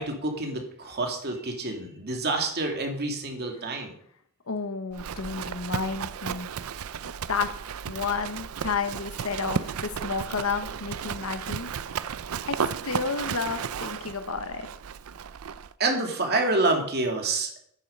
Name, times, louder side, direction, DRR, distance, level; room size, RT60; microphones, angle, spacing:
voice 1, 0.0-3.9 15.8-17.5, right 2 dB, 50° right, 3 dB, 2.4 m, -27 dB
voice 2, 4.5-6.5 7.3-7.5 7.9-11.7 12.5-14.7, left 4 dB, 80° left, 10 dB, 1.2 m, -31 dB
Livestock farm animals working animals, 4.9-15.7, right 7 dB, 85° right, 0.5 m, -34 dB
10.5 x 9.2 x 5.5 m, 0.65 s
head